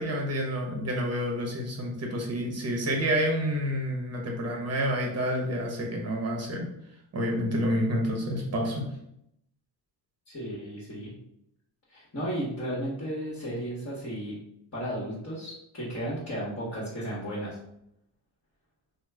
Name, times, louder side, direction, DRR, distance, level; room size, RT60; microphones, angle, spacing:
voice 1, 0.0-6.7 7.1-8.9, equal, 35° right, 1 dB, 0.9 m, -29 dB
voice 2, 10.3-11.1 11.9-14.4 14.7-17.6, equal, 30° left, -6 dB, 1.1 m, -34 dB
2.9 x 2.1 x 3.4 m, 0.78 s
cardioid pair, 95°, 46 cm